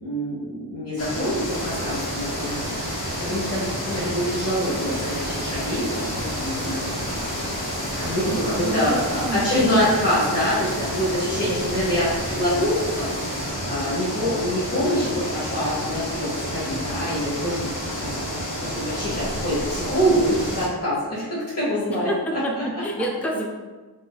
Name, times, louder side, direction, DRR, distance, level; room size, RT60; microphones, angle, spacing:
voice 1, 0.0-2.7 3.2-5.9 6.2-7.2 8.0-18.3 18.6-22.1 22.6-22.7, equal, 35° left, -9 dB, 1.0 m, -25 dB
sound 1, 1.0-20.7, equal, 60° left, 1.2 m, -30 dB
sound 2, 1.5-13.5, right 1 dB, 25° right, 1.0 m, -36 dB
voice 2, 8.3-9.6 10.0-10.4 21.9-23.5, right 1 dB, 5° left, -1 dB, 0.4 m, -29 dB
3.9 x 2.5 x 2.3 m, 1.3 s
wide cardioid pair, 50°, 42 cm